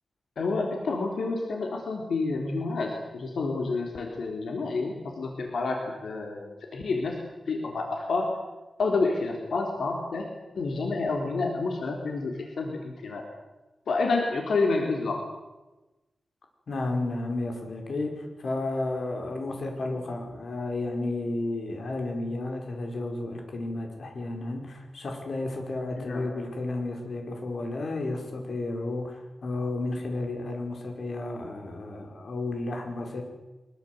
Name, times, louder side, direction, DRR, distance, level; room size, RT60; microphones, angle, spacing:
voice 1, 0.4-7.2 7.5-8.3 8.8-10.3 10.6-13.2 13.9-15.2 26.0-26.3, left 3 dB, 80° left, 2 dB, 3.7 m, -29 dB
voice 2, 16.7-33.2, left 2 dB, 60° left, 3 dB, 5.2 m, -32 dB
24.0 x 22.5 x 8.1 m, 1.1 s
wide cardioid pair, 145°, 0 cm